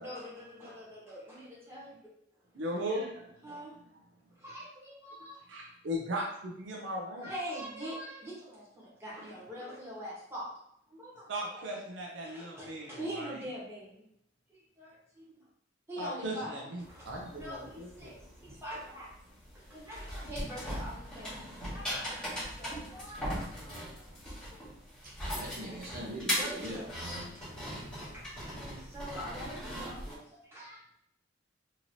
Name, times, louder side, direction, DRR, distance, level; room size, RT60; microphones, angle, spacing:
voice 1, 0.0-1.9 3.4-3.7 4.4-5.4 7.2-10.5 10.9-11.6 12.2-14.0 14.5-15.2 15.9-18.2 18.4-19.1 19.5-24.6 26.3-27.0 28.1-31.0, equal, 15° right, -8 dB, 1.2 m, -44 dB
voice 2, 2.5-3.1 5.5-7.3 11.3-13.4 16.0-18.1, equal, 70° right, -1 dB, 0.5 m, -37 dB
sound 1, 16.8-30.1, equal, 5° left, 1.3 m, -39 dB
voice 3, 25.0-27.2, right 1 dB, 50° right, -4 dB, 0.9 m, -42 dB
2.9 x 2.8 x 2.7 m, 0.75 s
head